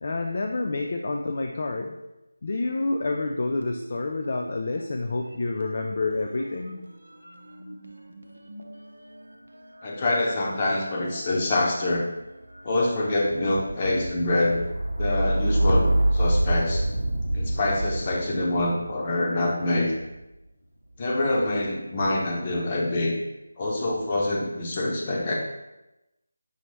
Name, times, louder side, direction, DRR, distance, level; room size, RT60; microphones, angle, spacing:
voice 1, 0.0-1.9 2.4-6.8, left 3 dB, 45° left, 3 dB, 0.3 m, -28 dB
sound 1, 3.6-4.9 5.2-20.2 21.0-21.6, right 1 dB, 80° right, 0.6 m, -29 dB
voice 2, 9.8-12.1 12.6-14.7 15.0-15.9 16.1-16.8 17.3-19.9 21.0-23.2 23.6-25.3, left 2 dB, 30° left, -2 dB, 0.9 m, -25 dB
5.4 x 3.0 x 3.2 m, 0.97 s
figure-of-eight pair, 160°, 0 cm